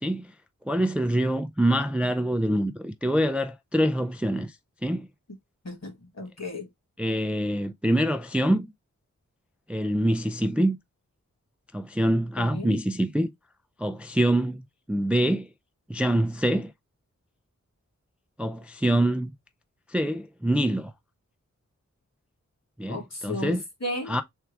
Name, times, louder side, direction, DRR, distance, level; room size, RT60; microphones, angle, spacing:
voice 1, 0.0-0.3 0.7-4.6 4.8-5.1 7.0-8.7 9.7-10.8 11.7-13.3 13.8-15.5 15.9-16.7 18.4-19.3 19.9-20.9 22.8-23.6 24.1-24.2, right 1 dB, 5° right, 0.3 m, -25 dB
voice 2, 5.6-6.7 12.4-12.8 22.9-24.1, left 1 dB, 60° left, 2.0 m, -34 dB
3.6 x 2.4 x 4.5 m
wide cardioid pair, 80°, 29 cm